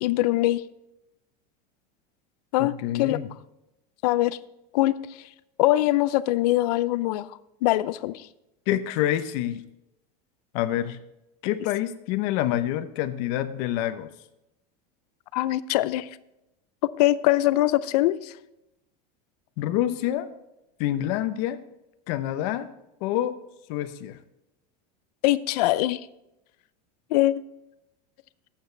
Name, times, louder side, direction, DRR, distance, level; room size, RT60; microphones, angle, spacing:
voice 1, 0.0-0.6 2.5-3.2 4.0-4.4 4.7-5.0 5.6-7.3 7.6-8.2 15.3-16.1 17.0-18.3 25.2-26.0 27.1-27.3, left 16 dB, 80° left, 16 dB, 0.6 m, -22 dB
voice 2, 2.6-3.3 8.7-9.6 10.5-11.0 11.4-14.1 19.6-20.3 20.8-21.6 22.1-22.7 23.0-23.4 23.7-24.2, left 12 dB, 60° left, 10 dB, 0.9 m, -27 dB
12.0 x 8.6 x 3.3 m, 0.90 s
supercardioid pair, 160°, 20 cm